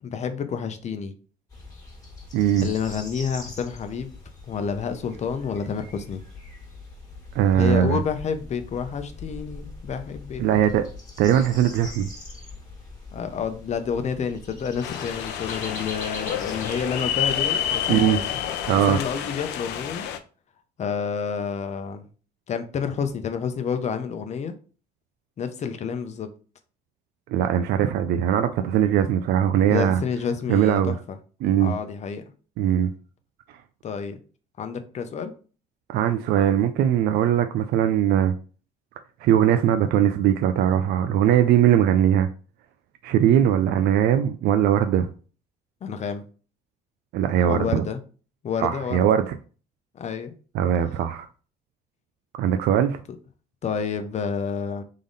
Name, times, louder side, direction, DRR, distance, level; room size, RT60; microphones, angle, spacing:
voice 1, 0.0-1.1 2.6-4.1 4.5-6.2 7.5-10.6 13.1-18.2 18.9-20.0 20.8-22.1 22.5-24.5 25.4-26.3 29.6-31.0 31.6-32.2 33.8-34.2 34.6-35.3 45.8-46.2 47.5-48.0 48.4-49.0 49.9-50.3 53.6-54.8, left 6 dB, 40° left, 0.7 m, -29 dB
sound 1, 1.5-19.1, left 3 dB, 20° left, 1.7 m, -42 dB
voice 2, 2.3-2.7 7.3-8.0 10.4-10.9 11.2-12.1 17.9-18.2 18.7-19.0 27.3-30.0 30.5-31.0 31.4-31.7 32.6-32.9 35.9-38.4 39.2-42.3 43.0-45.1 47.1-47.9 48.6-49.4 50.5-51.3 52.4-53.0, right 10 dB, 75° right, 0.4 m, -20 dB
sound 2, 14.8-20.2, left 10 dB, 85° left, 0.5 m, -29 dB
3.7 x 3.5 x 4.0 m
cardioid pair, 110°, 17 cm